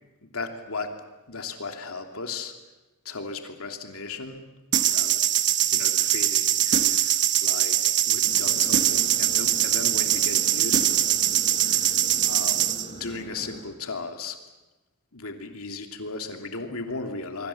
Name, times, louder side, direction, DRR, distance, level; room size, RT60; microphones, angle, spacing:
voice 1, 0.2-0.9 1.3-2.5 3.0-4.4 4.9-7.8 8.1-11.2 11.6-14.4 15.1-17.5, left 3 dB, 70° left, 4 dB, 2.9 m, -36 dB
sound 1, 4.7-12.9, right 11 dB, 55° right, 1.2 m, -22 dB
sound 2, 8.2-13.6, equal, 30° left, 5.6 m, -42 dB
25.5 x 23.5 x 7.2 m, 1.1 s
head